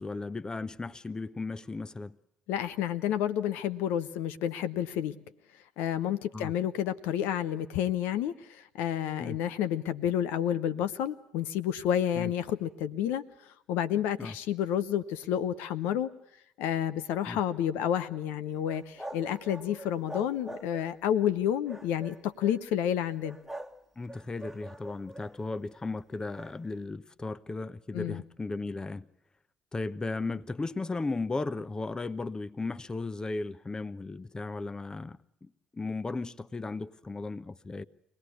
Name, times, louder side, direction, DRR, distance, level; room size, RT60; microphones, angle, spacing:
voice 1, 0.0-2.2 6.3-6.5 9.2-9.4 12.2-12.3 14.2-14.4 17.3-17.4 24.0-29.1 29.7-37.9, left 3 dB, 25° left, 1.0 m, -36 dB
voice 2, 2.5-5.2 5.8-16.1 16.6-23.4 27.9-28.2, left 10 dB, 70° left, 0.9 m, -30 dB
sound 1, 18.7-21.0 21.7-22.6 23.2-23.8 24.1-25.5 26.3-26.6, right 1 dB, ahead, 1.8 m, -44 dB
24.5 x 18.5 x 8.3 m
hypercardioid pair, 55°, 3 cm